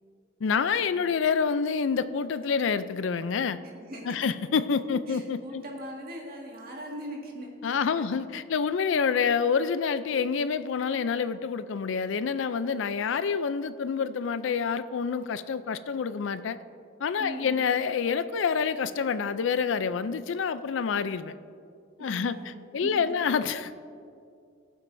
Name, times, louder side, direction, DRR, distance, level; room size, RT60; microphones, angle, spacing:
voice 1, 0.4-3.6 4.0-5.6 7.6-16.6 17.0-21.3 22.0-23.8, left 6 dB, 70° left, 13 dB, 0.4 m, -27 dB
voice 2, 3.7-4.2 5.1-8.2 17.2-17.6 22.0-22.9, equal, 50° right, -1 dB, 1.9 m, -40 dB
20.0 x 7.3 x 2.6 m, 2.4 s
head